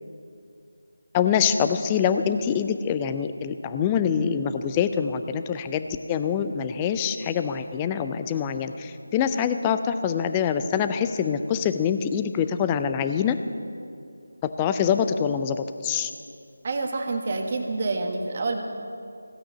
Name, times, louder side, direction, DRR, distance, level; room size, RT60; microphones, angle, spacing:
voice 1, 1.1-13.4 14.4-16.1, left 7 dB, 15° left, 9 dB, 0.5 m, -25 dB
voice 2, 16.6-18.6, right 3 dB, 35° right, 3 dB, 1.5 m, -27 dB
16.0 x 8.8 x 8.3 m, 2.4 s
figure-of-eight pair, 160°, 0 cm